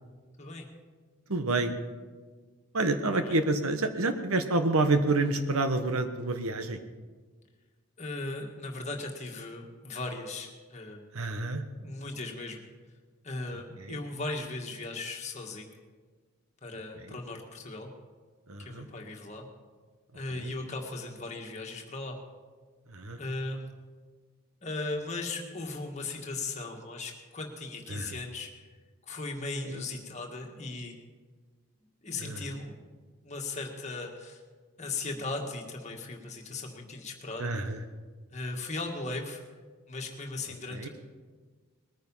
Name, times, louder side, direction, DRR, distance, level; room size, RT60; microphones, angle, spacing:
voice 1, 0.4-0.7 3.1-3.4 8.0-11.0 11.8-12.7 13.2-15.7 16.6-17.9 18.6-19.5 20.1-22.2 23.2-23.7 24.6-28.6 29.0-31.0 32.0-32.8 33.2-34.4 34.8-37.5 38.3-39.4 39.9-40.9, left 3 dB, 30° left, 1 dB, 1.7 m, -37 dB
voice 2, 1.3-1.7 2.7-6.8 11.1-11.6 13.8-14.0 17.1-17.2 18.5-18.9 20.3-20.5 22.9-23.2 27.9-28.1 29.7-29.8 32.2-32.4 37.4-37.8 40.7-40.9, right 2 dB, 70° right, 8 dB, 1.2 m, -28 dB
20.0 x 9.5 x 5.6 m, 1.4 s
head